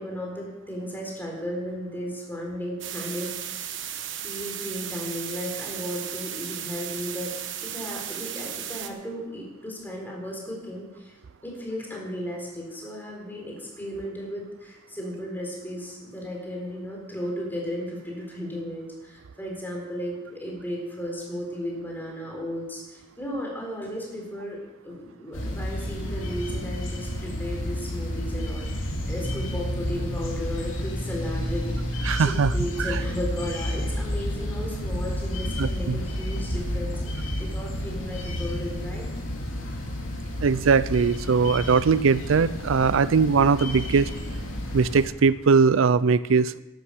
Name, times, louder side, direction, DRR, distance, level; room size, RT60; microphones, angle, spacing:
voice 1, 0.0-3.6 4.2-7.3 7.6-39.1, equal, 10° left, -2 dB, 4.2 m, -35 dB
sound 1, 2.8-8.9, right 10 dB, 65° right, 1.2 m, -35 dB
sound 2, 25.3-45.1, left 1 dB, 85° left, 2.8 m, -31 dB
voice 2, 32.1-32.5 32.8-33.0 35.6-36.0 40.4-44.1 44.7-46.6, right 5 dB, 85° right, 17 dB, 0.5 m, -20 dB
13.0 x 11.5 x 6.5 m, 1.1 s
head